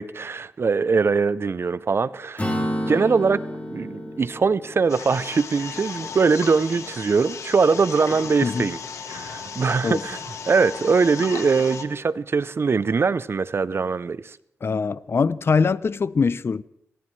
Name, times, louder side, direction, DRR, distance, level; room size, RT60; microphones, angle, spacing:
voice 1, 0.0-2.5 2.9-3.4 3.7-8.8 9.1-10.2 10.5-14.4, right 5 dB, 55° right, 0.6 m, -22 dB
Acoustic guitar / Strum, 2.4-6.0, equal, 30° left, 4.0 m, -30 dB
sound 1, 4.9-11.9, left 6 dB, 80° left, 1.4 m, -36 dB
voice 2, 14.6-16.6, left 5 dB, 55° left, 0.5 m, -22 dB
27.0 x 15.0 x 3.2 m
cardioid pair, 45°, 5 cm